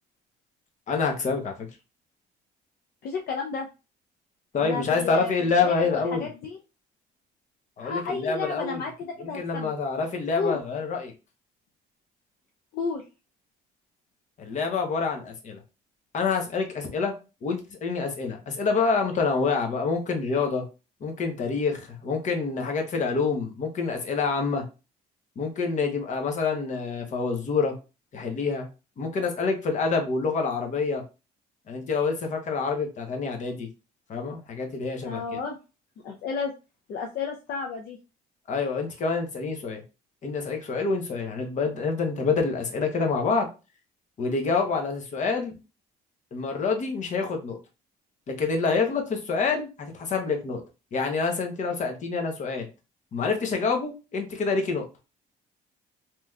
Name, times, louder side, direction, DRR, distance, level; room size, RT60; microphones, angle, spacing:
voice 1, 0.9-1.5 4.5-6.3 7.8-8.8 9.2-11.1 14.4-15.6 16.1-17.1 17.4-20.6 21.0-24.6 25.4-27.7 28.1-28.7 29.0-31.0 31.7-33.7 34.1-35.2 38.5-39.8 40.2-43.5 44.2-45.6 46.3-47.6 48.3-50.6 50.9-52.7 53.1-54.8, left 4 dB, 45° left, 4 dB, 0.9 m, -27 dB
voice 2, 3.0-3.7 4.6-6.6 7.8-9.7 10.3-10.6 12.7-13.0 35.0-35.6 36.0-36.5 36.9-38.0, left 5 dB, 65° left, 2 dB, 0.5 m, -32 dB
3.2 x 2.9 x 2.3 m, 0.30 s
cardioid pair, 110°, 17 cm